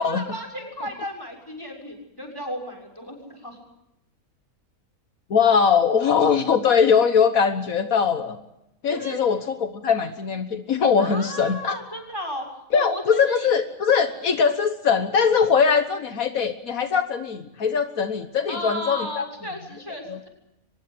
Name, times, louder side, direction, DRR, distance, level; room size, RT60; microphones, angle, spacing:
voice 1, 0.0-3.6 8.9-9.2 11.0-12.4 12.7-13.5 14.0-14.1 18.5-20.3, equal, 15° left, 2 dB, 6.6 m, -34 dB
voice 2, 5.3-8.4 8.8-11.7 12.7-19.2 20.1-20.3, left 6 dB, 75° left, 8 dB, 1.7 m, -21 dB
24.0 x 21.5 x 8.0 m, 0.86 s
omnidirectional pair, 1.5 m